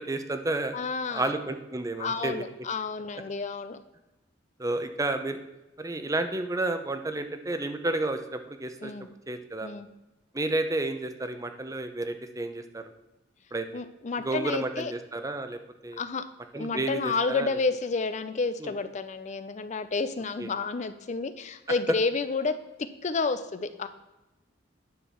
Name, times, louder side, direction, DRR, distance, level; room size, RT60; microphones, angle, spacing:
voice 1, 0.0-0.7 1.1-2.3 4.6-5.4 5.8-8.9 9.3-9.7 10.3-12.9 13.5-13.7 14.2-16.0 16.5-17.6 18.6-18.7 20.4-20.5, right 2 dB, 20° right, 8 dB, 0.7 m, -31 dB
voice 2, 0.7-1.4 2.0-3.8 8.8-9.1 9.6-9.9 13.7-14.9 16.0-16.2 16.5-22.5 23.0-23.9, left 4 dB, 40° left, 11 dB, 0.5 m, -30 dB
10.5 x 4.5 x 7.0 m, 1.0 s
head